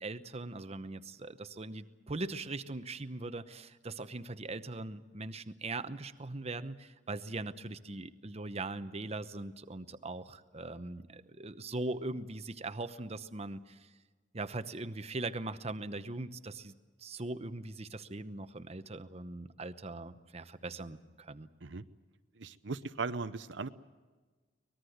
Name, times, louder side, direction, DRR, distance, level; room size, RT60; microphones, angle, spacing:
voice 1, 0.0-13.9 14.3-16.7 17.0-21.5, right 2 dB, 35° right, 11 dB, 0.9 m, -40 dB
voice 2, 22.4-23.7, right 4 dB, 70° right, 11 dB, 0.8 m, -38 dB
24.5 x 20.0 x 8.0 m, 1.4 s
head